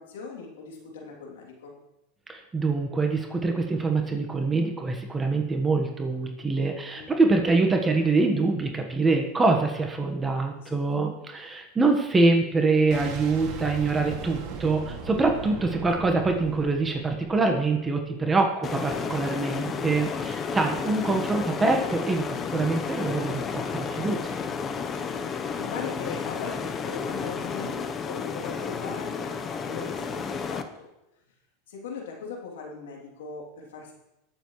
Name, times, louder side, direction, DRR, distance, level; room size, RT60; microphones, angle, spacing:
voice 1, 0.0-1.8 7.0-7.3 10.6-10.9 18.1-18.3 25.1-30.9 31.7-33.9, left 5 dB, 85° left, -1 dB, 3.0 m, -40 dB
voice 2, 2.3-24.4, right 3 dB, 15° right, 3 dB, 1.3 m, -25 dB
Boom, 12.9-17.8, right 5 dB, 55° right, 2.3 m, -38 dB
sound 1, 18.6-30.6, left 6 dB, 30° left, 0.9 m, -32 dB
20.5 x 7.1 x 3.2 m, 0.92 s
supercardioid pair, 115°, 0 cm